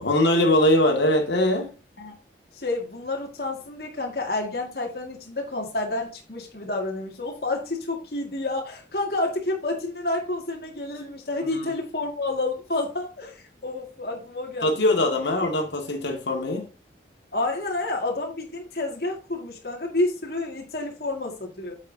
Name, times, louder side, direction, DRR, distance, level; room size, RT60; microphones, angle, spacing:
voice 1, 0.0-1.7 14.6-16.7, left 1 dB, 80° left, 2.1 m, -21 dB
voice 2, 2.5-15.0 17.3-21.8, left 2 dB, 55° left, 2.1 m, -29 dB
8.5 x 7.3 x 2.8 m
head